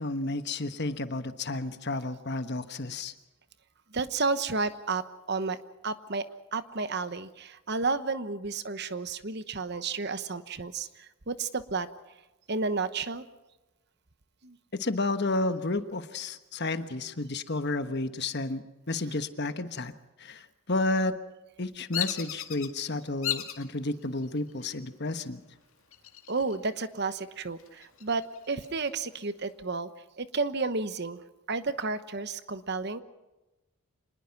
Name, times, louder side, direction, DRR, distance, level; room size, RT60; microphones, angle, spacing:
voice 1, 0.0-3.1 14.7-19.9 20.2-20.4 20.7-21.2 21.6-25.4, left 2 dB, 50° left, 10 dB, 1.3 m, -31 dB
voice 2, 3.9-5.6 5.8-10.9 11.3-11.9 12.5-13.2 14.4-14.6 26.3-29.9 30.2-31.2 31.5-33.0, right 4 dB, 50° right, 12 dB, 1.1 m, -31 dB
Bird vocalization bird call bird song, 21.9-22.7 23.2-23.6 24.2-24.7 25.9-26.7 27.0-27.1 27.6-29.0, left 11 dB, 70° left, 2.0 m, -35 dB
26.5 x 20.5 x 5.9 m, 1.0 s
head